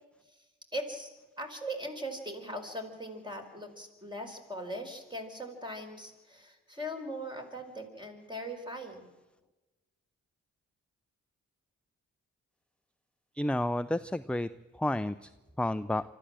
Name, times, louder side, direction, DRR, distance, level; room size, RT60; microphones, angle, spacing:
voice 1, 0.7-9.1, equal, 15° right, 3 dB, 5.1 m, -40 dB
voice 2, 13.4-14.5 14.8-15.3 15.6-16.0, left 1 dB, 5° left, 13 dB, 0.6 m, -30 dB
24.5 x 14.0 x 7.7 m, 1.2 s
supercardioid pair, 45°, 34 cm